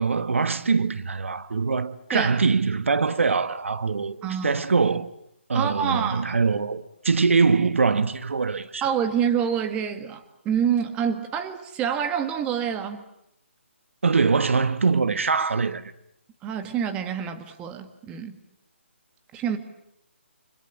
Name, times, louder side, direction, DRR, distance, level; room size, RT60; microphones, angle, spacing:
voice 1, 0.0-5.1 5.5-8.8 14.0-15.9, right 4 dB, 70° right, 1.3 m, -23 dB
voice 2, 4.2-4.6 5.5-6.3 8.8-13.0 16.4-18.4 19.3-19.6, right 8 dB, 15° right, 1.8 m, -27 dB
29.5 x 25.5 x 7.4 m
figure-of-eight pair, 155°, 7 cm